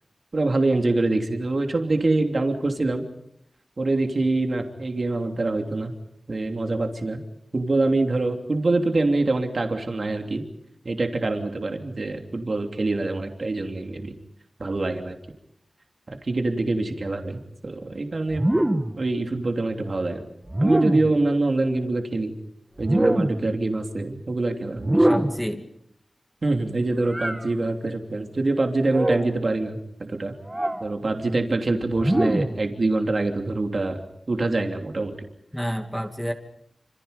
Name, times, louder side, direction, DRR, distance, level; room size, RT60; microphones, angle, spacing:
voice 1, 0.3-3.1 3.8-5.9 6.3-7.2 7.5-10.4 10.8-14.1 14.6-15.2 16.1-18.4 19.0-20.3 20.6-22.3 22.8-25.1 26.4-30.3 30.8-34.0 34.3-35.1, right 2 dB, 55° right, 4 dB, 3.0 m, -25 dB
sound 1, 18.3-19.0 20.5-21.2 22.8-23.5 24.8-25.5 27.1-27.4 28.9-29.3 30.5-30.9 32.0-32.6, right 1 dB, 20° right, 2.1 m, -23 dB
voice 2, 25.0-25.7 35.5-36.3, equal, 5° left, 4 dB, 2.6 m, -28 dB
27.5 x 27.5 x 5.3 m, 0.74 s
wide cardioid pair, 70°, 0 cm